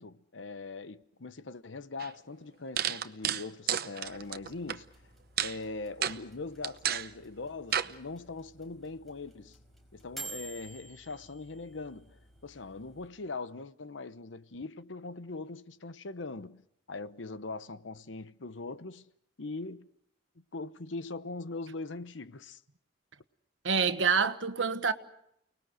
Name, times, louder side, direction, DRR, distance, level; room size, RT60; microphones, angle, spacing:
voice 1, 0.0-4.9 5.4-9.6 9.9-16.6 16.9-19.1 19.4-19.9 20.5-22.6, left 3 dB, 85° left, 0.9 m, -41 dB
sound 1, 2.0-2.1 2.8-4.8 5.4-5.6 6.0-6.2 6.6-7.1 7.7-7.9, right 9 dB, 55° right, 0.9 m, -31 dB
sound 2, 4.0-13.1, right 2 dB, ahead, 4.9 m, -51 dB
voice 2, 23.6-24.9, right 5 dB, 85° right, 1.4 m, -27 dB
30.0 x 20.0 x 6.3 m
head